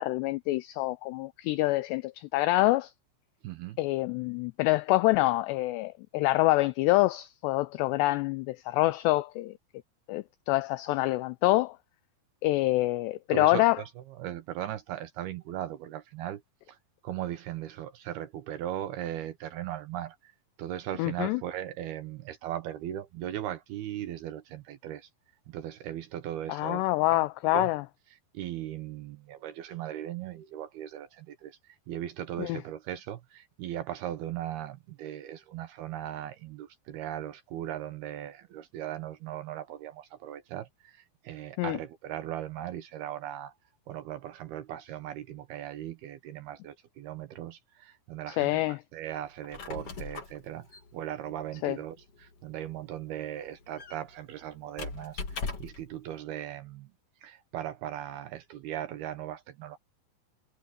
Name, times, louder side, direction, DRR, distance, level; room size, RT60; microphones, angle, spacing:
voice 1, 0.0-2.9 3.8-9.5 10.1-11.8 12.4-13.8 21.0-21.4 26.5-27.8 32.4-32.6 41.6-41.8 48.3-48.8 51.6-51.8, left 19 dB, 90° left, 2.4 m, -26 dB
voice 2, 3.4-3.8 13.3-16.4 16.7-16.8 17.0-20.3 20.6-25.1 25.5-27.2 27.5-27.7 28.3-43.5 43.9-56.9 57.2-59.8, right 11 dB, 70° right, 2.6 m, -38 dB
Squeak, 49.3-55.9, left 4 dB, 35° left, 2.9 m, -41 dB
omnidirectional pair, 5.5 m